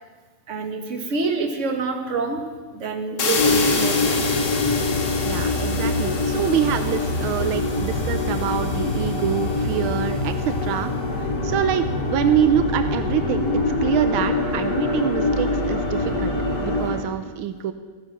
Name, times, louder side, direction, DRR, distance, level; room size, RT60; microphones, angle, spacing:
voice 1, 0.5-2.4 2.7-4.4, right 4 dB, 40° right, 3 dB, 1.7 m, -27 dB
sound 1, 3.2-10.0, left 4 dB, 60° left, 2.0 m, -29 dB
sound 2, 3.4-17.0, left 2 dB, 80° left, 3.4 m, -24 dB
voice 2, 5.2-10.9 11.2-13.5 13.8-16.3 16.6-17.7, right 9 dB, 90° right, 10 dB, 1.5 m, -25 dB
14.5 x 9.9 x 6.1 m, 1.3 s
omnidirectional pair, 2.2 m